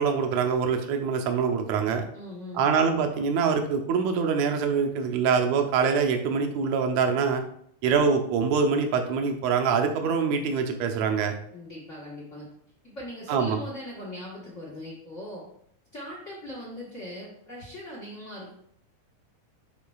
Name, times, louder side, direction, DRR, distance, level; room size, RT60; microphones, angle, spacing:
voice 1, 0.0-2.0 2.5-7.4 7.8-11.4 13.3-13.6, right 6 dB, 75° right, 5 dB, 1.8 m, -24 dB
voice 2, 2.1-2.7 11.5-12.5 12.8-15.5 15.9-18.5, left 1 dB, 70° left, -5 dB, 0.7 m, -40 dB
10.5 x 4.3 x 2.3 m, 0.69 s
omnidirectional pair, 3.6 m